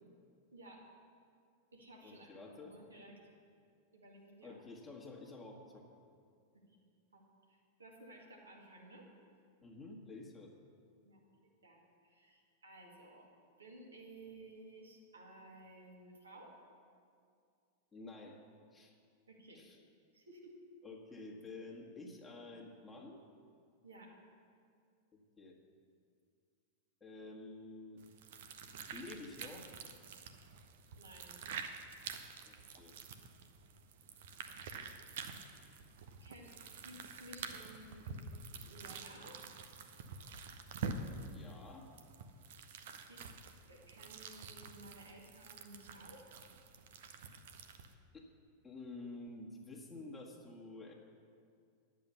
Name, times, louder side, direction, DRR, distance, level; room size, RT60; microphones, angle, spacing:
voice 1, 0.5-0.8 1.7-3.2 3.9-4.6 7.1-7.2 7.5-9.1 11.0-13.3 13.6-16.5 19.3-19.6 20.1-20.6 23.8-24.2 31.0-31.3 36.2-36.5 36.8-38.2 38.5-39.4 43.1-43.2 43.7-46.3, right 1 dB, 75° right, -2 dB, 2.0 m, -56 dB
voice 2, 2.0-2.7 4.4-6.0 9.6-10.5 17.9-18.4 18.7-18.9 19.5-19.8 20.8-23.2 25.1-25.6 27.0-28.0 28.9-29.7 32.5-32.9 41.3-41.9 48.1-48.3 48.6-50.9, left 2 dB, 15° left, -2 dB, 1.7 m, -50 dB
sound 1, 28.0-47.9, right 5 dB, 55° right, 0.8 m, -48 dB
10.5 x 7.7 x 6.9 m, 2.3 s
figure-of-eight pair, 90°, 0 cm